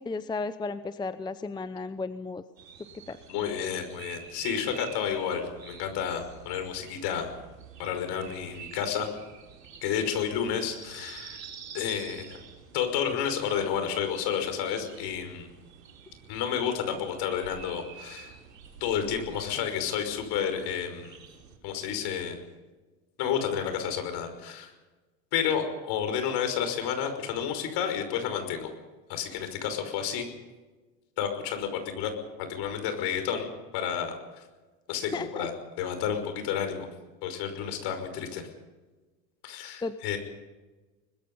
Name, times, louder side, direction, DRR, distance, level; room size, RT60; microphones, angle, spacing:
voice 1, 0.0-2.4 3.1-3.2 35.1-35.5 39.8-39.9, left 3 dB, 10° left, 13 dB, 0.7 m, -34 dB
sound 1, 2.6-21.6, right 7 dB, 85° right, 5.1 m, -48 dB
voice 2, 3.3-7.4 7.8-9.1 9.8-11.4 11.7-12.4 12.7-15.5 16.3-18.3 18.8-21.2 21.6-22.4 23.2-24.7 25.3-28.7 29.1-30.3 31.2-32.1 32.4-33.5 33.7-34.4 34.9-35.5 35.8-36.9 37.2-38.5 39.4-40.2, left 8 dB, 55° left, 7 dB, 5.7 m, -31 dB
23.5 x 20.5 x 5.5 m, 1.2 s
hypercardioid pair, 95°, 48 cm